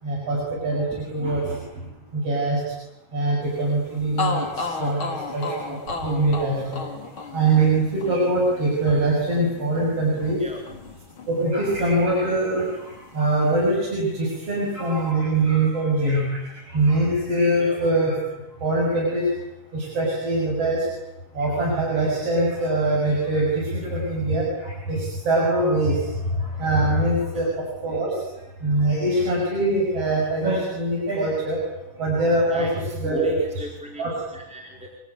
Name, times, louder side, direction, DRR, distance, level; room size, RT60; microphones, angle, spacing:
voice 1, 0.0-2.8 3.1-6.9 7.2-10.4 11.3-18.2 18.6-19.4 19.7-20.9 21.3-31.6 32.0-32.7 33.0-33.6 34.0-34.1, right 2 dB, 50° right, -3 dB, 7.9 m, -23 dB
sound 1, 3.8-3.9 4.2-12.0 12.3-13.5, left 4 dB, 45° left, 4.3 m, -34 dB
voice 2, 17.6-17.9 23.8-23.9 27.3-27.5 32.5-34.0 34.3-34.9, equal, ahead, -1 dB, 3.9 m, -38 dB
27.5 x 22.5 x 9.7 m, 0.95 s
omnidirectional pair, 3.3 m